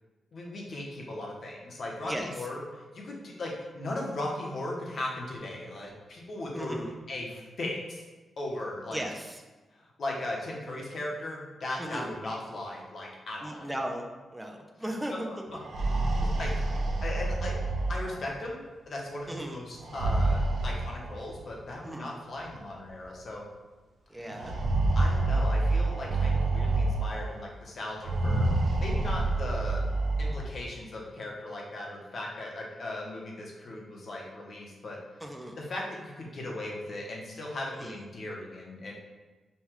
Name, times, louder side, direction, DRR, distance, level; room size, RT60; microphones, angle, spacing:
voice 1, 0.3-8.0 8.4-9.0 9.7-13.7 15.1-15.4 16.4-16.5 17.0-17.6 17.9-23.4 24.1-24.5 25.0-28.5 28.8-29.8 30.2-35.0 35.6-38.9, left 1 dB, 50° left, -2 dB, 0.8 m, -37 dB
voice 2, 6.5-6.9 8.9-9.4 11.8-12.1 13.4-15.5 16.1-16.2 19.3-19.6 21.8-22.1 24.1-24.6 35.2-35.6 37.7-38.0, right 1 dB, 5° right, 2 dB, 0.4 m, -37 dB
sound 1, 15.5-18.4 19.8-21.4 22.4-22.5 22.9-23.0 24.3-27.4 28.0-30.6, right 2 dB, 80° right, 0.7 m, -28 dB
5.4 x 2.2 x 3.1 m, 1.2 s
wide cardioid pair, 145°, 0 cm